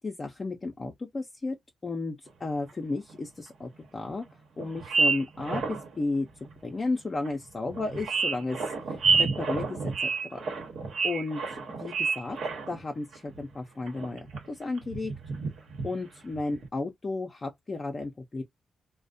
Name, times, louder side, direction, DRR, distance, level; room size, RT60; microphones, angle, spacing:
voice 1, 0.0-1.6 1.8-4.2 4.6-6.3 6.6-10.4 11.0-12.4 12.7-15.1 15.8-18.4, left 3 dB, 30° left, 0.5 m, -33 dB
sound 1, 2.7-2.8 3.1-3.2 4.1-4.2 4.6-5.9 6.4-6.5 7.2-7.3 7.7-12.9 13.1-13.4 13.9-14.5 14.8-15.9 16.3-16.6, right 4 dB, 85° right, 0.9 m, -29 dB
2.4 x 2.1 x 2.5 m
cardioid pair, 115°, 0 cm